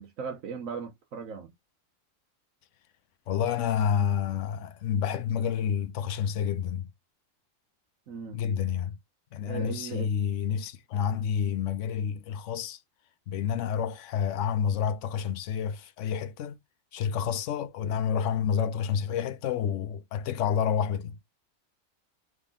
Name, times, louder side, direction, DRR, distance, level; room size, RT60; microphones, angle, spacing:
voice 1, 0.0-1.5 8.1-8.4 9.5-10.1, right 6 dB, 75° right, 1.2 m, -37 dB
voice 2, 3.3-6.9 8.3-8.9 9.3-12.8 13.3-16.6 16.9-21.1, left 8 dB, 70° left, 0.9 m, -29 dB
3.7 x 3.5 x 3.6 m
omnidirectional pair, 1.4 m